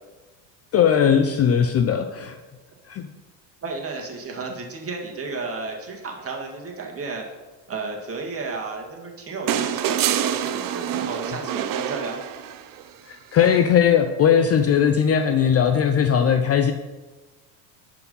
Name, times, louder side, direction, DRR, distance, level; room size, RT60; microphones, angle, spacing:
voice 1, 0.7-2.4 2.9-3.1 13.1-16.7, left 8 dB, 30° left, 7 dB, 0.5 m, -19 dB
voice 2, 3.6-7.2 7.7-12.2, right 3 dB, 30° right, 1 dB, 2.0 m, -33 dB
sound 1, 9.5-12.8 14.3-14.4, right 10 dB, 45° right, 0.7 m, -26 dB
10.5 x 4.9 x 5.4 m, 1.2 s
supercardioid pair, 105°, 49 cm